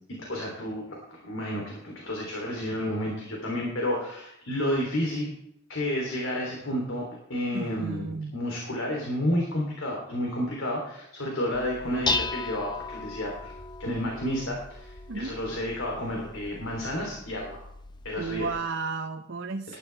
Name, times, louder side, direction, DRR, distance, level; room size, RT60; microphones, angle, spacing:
voice 1, 0.1-5.3 5.7-8.0 8.3-13.5 13.8-17.6 18.0-18.5, left 1 dB, 75° left, -1 dB, 3.3 m, -31 dB
voice 2, 7.5-8.4 15.1-15.4 18.2-19.8, right 4 dB, 65° right, 4 dB, 0.9 m, -33 dB
Dishes pots and pans, 11.5-18.6, left 3 dB, 20° left, 0.6 m, -36 dB
20.0 x 11.5 x 3.4 m, 0.78 s
head